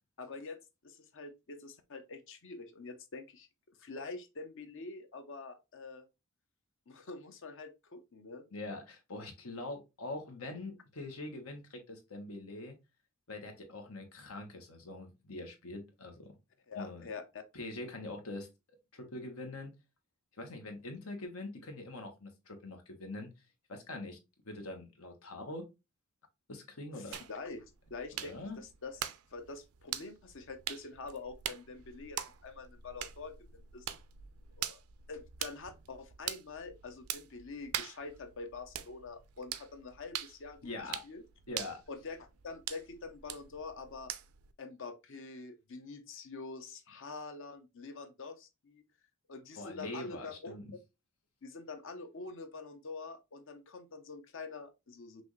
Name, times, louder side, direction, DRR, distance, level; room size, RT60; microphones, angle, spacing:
voice 1, 0.2-3.5 3.8-6.1 6.9-8.4 16.7-17.4 26.9-29.0 29.3-33.8 34.6-34.8 35.1-40.7 41.0-41.2 41.9-44.1 44.6-48.8 49.3-50.5 51.4-55.2, left 4 dB, 65° left, 0.7 m, -46 dB
voice 2, 8.5-12.7 13.3-16.4 16.7-17.1 17.5-18.5 18.9-19.7 20.4-23.3 23.7-24.2 24.4-25.6 26.5-27.2 28.1-28.6 40.6-41.0 41.5-41.8 49.5-50.7, left 2 dB, 90° left, 1.3 m, -43 dB
sound 1, 27.1-44.5, right 11 dB, 85° right, 0.5 m, -44 dB
6.0 x 2.5 x 3.1 m
head